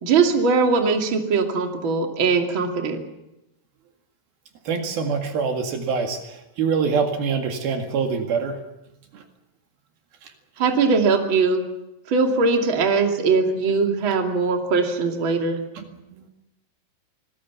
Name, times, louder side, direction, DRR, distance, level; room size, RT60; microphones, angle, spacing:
voice 1, 0.0-3.0 10.6-11.6 12.1-15.6, right 4 dB, 35° right, 3 dB, 2.8 m, -20 dB
voice 2, 4.7-8.6 10.2-10.3 15.8-16.3, right 5 dB, 65° right, 4 dB, 3.8 m, -25 dB
26.5 x 20.0 x 7.3 m, 0.91 s
omnidirectional pair, 4.7 m